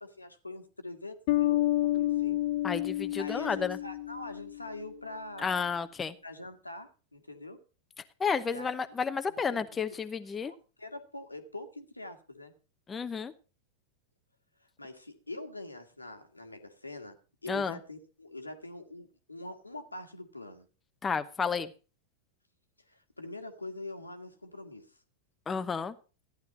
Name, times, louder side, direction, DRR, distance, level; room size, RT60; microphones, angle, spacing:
voice 1, 0.0-2.3 3.1-5.7 6.2-7.6 8.5-9.0 9.3-10.0 10.3-12.5 14.8-17.2 17.4-20.7 22.9-25.0, left 2 dB, 85° left, 7 dB, 1.7 m, -44 dB
Bass guitar, 1.3-4.8, left 15 dB, 50° left, 0.6 m, -29 dB
voice 2, 2.6-3.8 5.4-6.1 8.2-10.5 12.9-13.3 17.5-17.8 21.0-21.7 25.5-25.9, left 5 dB, 15° left, 10 dB, 0.8 m, -31 dB
14.0 x 10.5 x 4.0 m, 0.34 s
figure-of-eight pair, 90°, 0 cm